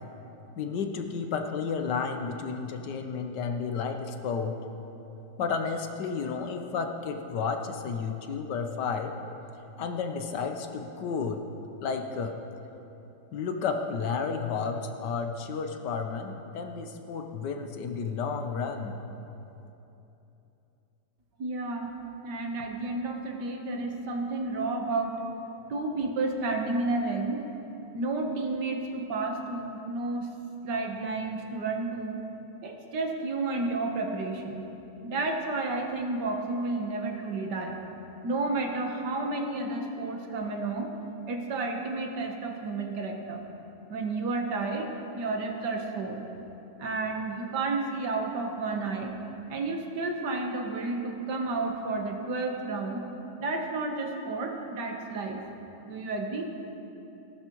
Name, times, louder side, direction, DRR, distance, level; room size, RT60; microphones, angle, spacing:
voice 1, 0.6-4.6 5.4-9.1 9.8-11.4 11.8-12.3 13.3-19.0, left 5 dB, 80° left, 5 dB, 1.5 m, -32 dB
voice 2, 21.4-22.0 22.2-25.2 25.5-27.4 27.9-30.3 30.6-32.2 32.6-34.6 35.0-37.8 38.2-40.9 41.3-43.4 43.9-44.9 45.1-46.3 46.8-49.2 49.5-53.0 53.4-55.4 55.9-56.5, right 3 dB, 75° right, 2 dB, 1.8 m, -31 dB
18.0 x 11.5 x 3.0 m, 3.0 s
omnidirectional pair, 1.8 m